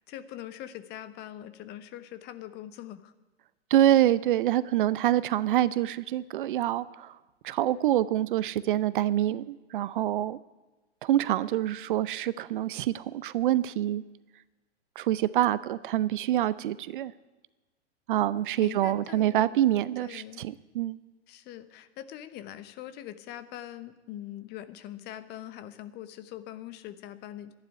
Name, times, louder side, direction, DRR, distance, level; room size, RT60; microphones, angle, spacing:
voice 1, 0.1-3.1 18.6-19.7 20.0-20.5 21.3-27.5, left 12 dB, 30° left, 12 dB, 1.0 m, -42 dB
voice 2, 3.7-7.1 7.4-10.4 11.0-14.0 15.0-17.1 18.1-21.0, right 13 dB, 50° right, 18 dB, 0.6 m, -26 dB
12.5 x 11.0 x 9.8 m, 1.2 s
figure-of-eight pair, 110°, 34 cm